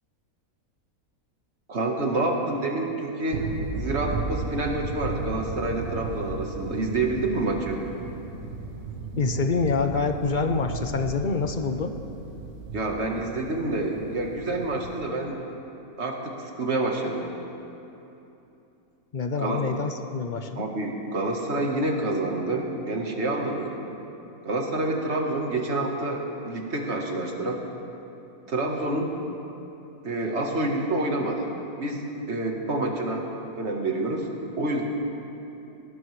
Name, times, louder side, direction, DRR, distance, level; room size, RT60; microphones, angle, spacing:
voice 1, 1.7-3.5 3.7-7.8 12.7-15.4 16.0-17.3 19.4-19.6 20.5-23.8 24.4-27.6 28.5-29.1 30.0-31.5 31.8-33.2 33.5-34.3 34.6-34.8, right 2 dB, 50° right, 1 dB, 1.6 m, -28 dB
sound 1, 3.3-15.0, right 4 dB, 65° right, 1.4 m, -35 dB
voice 2, 9.2-12.0 19.1-20.7, left 4 dB, 45° left, 6 dB, 0.6 m, -26 dB
19.0 x 17.5 x 3.2 m, 2.9 s
omnidirectional pair, 1.6 m